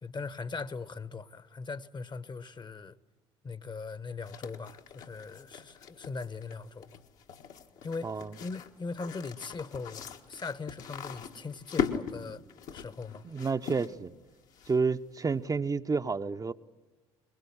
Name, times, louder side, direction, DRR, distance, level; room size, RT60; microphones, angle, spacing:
voice 1, 0.0-3.0 3.4-6.9 7.8-8.1 8.4-12.4 12.7-13.2, left 4 dB, 30° left, 1.1 m, -40 dB
sound 1, 4.2-15.1, left 7 dB, 65° left, 1.6 m, -40 dB
voice 2, 8.0-8.3 13.2-14.1 14.7-16.5, right 4 dB, 25° right, 0.7 m, -30 dB
22.0 x 21.0 x 8.7 m
hypercardioid pair, 55°, 14 cm